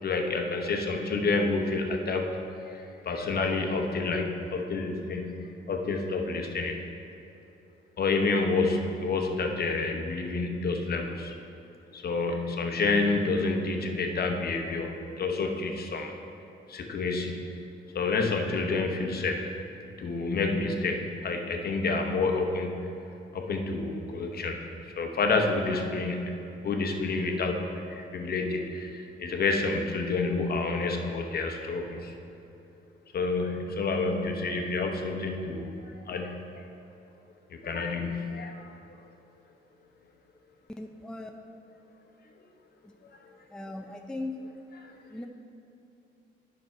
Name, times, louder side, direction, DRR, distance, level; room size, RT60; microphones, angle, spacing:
voice 1, 0.0-6.7 8.0-11.3 11.9-16.1 16.7-17.4 17.9-19.5 20.0-22.9 23.3-24.6 25.0-26.3 26.6-32.1 33.1-36.5 37.6-38.8 44.8-44.9, left 3 dB, 50° left, 3 dB, 0.9 m, -29 dB
voice 2, 40.8-41.3 42.8-42.9 43.5-44.5 45.1-45.3, left 2 dB, 5° left, 3 dB, 0.5 m, -38 dB
9.2 x 6.2 x 4.4 m, 2.8 s
cardioid pair, 90°, 20 cm